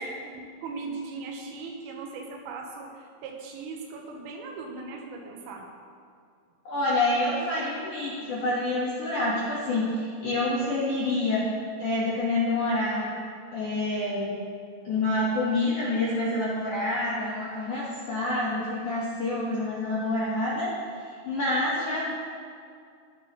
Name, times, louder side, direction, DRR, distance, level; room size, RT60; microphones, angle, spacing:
voice 1, 0.0-5.7, right 4 dB, 80° right, 1 dB, 3.7 m, -39 dB
voice 2, 6.7-11.5 11.8-13.1 13.5-14.3 14.8-20.7 21.1-22.1, left 2 dB, 65° left, -7 dB, 2.0 m, -27 dB
20.0 x 7.5 x 3.2 m, 2.3 s
omnidirectional pair, 5.7 m